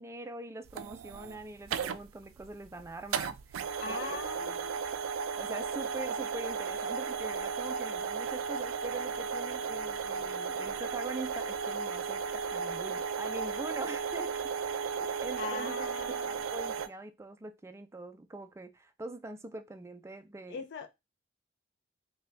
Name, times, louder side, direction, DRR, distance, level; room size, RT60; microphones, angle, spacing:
voice 1, 0.0-4.6 5.4-14.5 15.0-20.6, right 2 dB, 15° right, 0.3 m, -43 dB
sound 1, 0.7-16.9, right 6 dB, 90° right, 0.4 m, -35 dB
voice 2, 3.8-4.8 15.4-16.4 20.5-20.9, left 6 dB, 60° left, 0.4 m, -41 dB
3.9 x 2.2 x 3.2 m
head